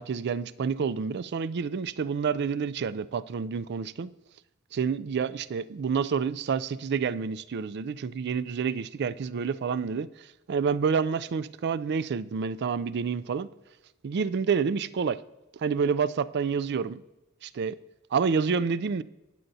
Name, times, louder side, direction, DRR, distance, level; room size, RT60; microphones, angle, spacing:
voice 1, 0.0-4.1 4.7-13.5 14.0-15.2 15.5-17.0 17.4-17.7 18.1-19.0, right 6 dB, 50° right, 0.4 m, -28 dB
19.5 x 7.8 x 2.7 m
head